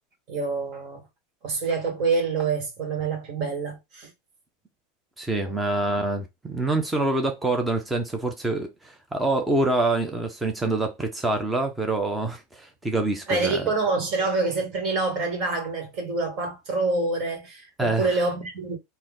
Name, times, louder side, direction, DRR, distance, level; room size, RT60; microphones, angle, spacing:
voice 1, 0.3-1.0 1.4-4.1 13.3-18.8, right 3 dB, 45° right, 1.9 m, -26 dB
voice 2, 5.2-13.6 17.8-18.2, right 2 dB, 5° right, 0.9 m, -26 dB
4.3 x 2.7 x 3.8 m
supercardioid pair, 150°, 0 cm